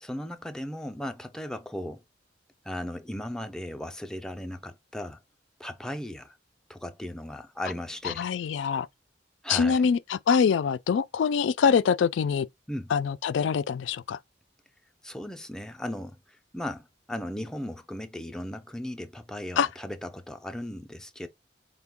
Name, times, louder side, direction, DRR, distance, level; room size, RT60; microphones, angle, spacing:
voice 1, 0.0-2.0 2.6-5.2 5.6-6.4 6.7-8.3 9.4-9.8 12.7-12.9 15.0-16.2 16.5-21.3, left 1 dB, 5° left, 0.4 m, -36 dB
voice 2, 8.0-8.9 9.5-12.5 12.9-14.2 19.6-19.7, left 6 dB, 85° left, 0.3 m, -24 dB
4.5 x 2.2 x 3.5 m
head